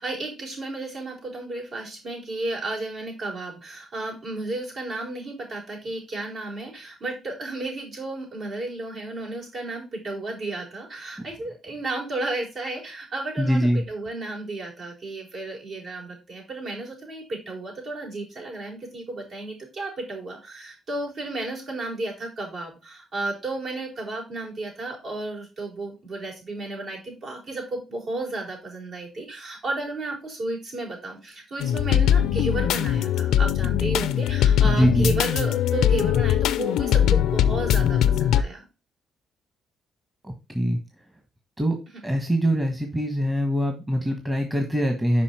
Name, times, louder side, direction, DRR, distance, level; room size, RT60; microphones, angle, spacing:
voice 1, 0.0-38.6 41.9-42.0, right 2 dB, 60° right, -2 dB, 4.4 m, -33 dB
voice 2, 13.4-13.8 34.6-35.1 40.2-40.8 41.6-41.8 42.0-45.2, equal, 15° right, 3 dB, 1.3 m, -23 dB
sound 1, 31.6-38.4, left 10 dB, 85° left, 0.4 m, -21 dB
5.6 x 5.2 x 4.4 m, 0.28 s
cardioid pair, 90°, 0 cm